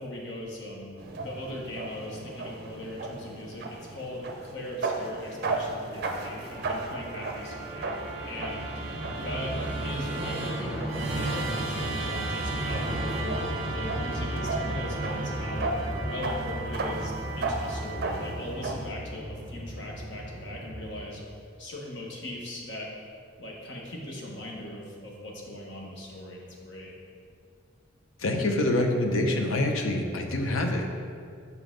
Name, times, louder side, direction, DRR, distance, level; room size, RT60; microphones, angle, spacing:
voice 1, 0.0-7.9 8.3-8.8 9.1-9.6 9.8-15.7 16.0-21.2 21.6-22.9 23.4-26.9, left 1 dB, 60° left, -2 dB, 1.1 m, -39 dB
sound 1, 1.0-18.9, right 2 dB, 50° right, 0.5 m, -36 dB
Musical instrument, 6.0-21.3, right 1 dB, 30° right, 1.0 m, -34 dB
voice 2, 28.2-31.0, left 1 dB, 85° left, 4 dB, 0.7 m, -26 dB
5.9 x 5.3 x 3.8 m, 2.3 s
head